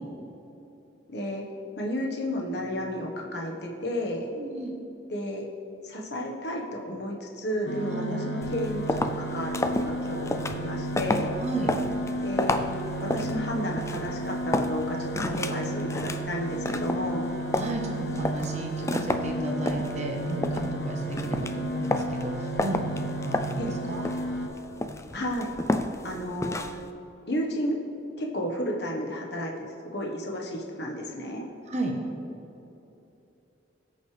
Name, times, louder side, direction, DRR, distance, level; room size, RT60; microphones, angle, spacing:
voice 1, 1.1-1.4 1.8-4.3 5.1-5.5 5.8-11.3 12.2-12.7 13.0-17.2 23.6-23.8 25.1-25.5 26.0-26.6 27.3-27.8 28.2-29.7 29.9-31.4, equal, 60° left, 0 dB, 1.3 m, -32 dB
voice 2, 4.3-4.7 7.9-8.2 11.4-11.7 17.5-23.6 23.9-24.1 31.7-31.9, right 1 dB, 35° right, 1 dB, 1.1 m, -33 dB
sound 1, 7.7-24.5, right 1 dB, 85° left, 1.2 m, -33 dB
sound 2, 8.4-26.9, left 2 dB, 15° left, 0.4 m, -32 dB
19.5 x 6.5 x 3.3 m, 2.9 s
head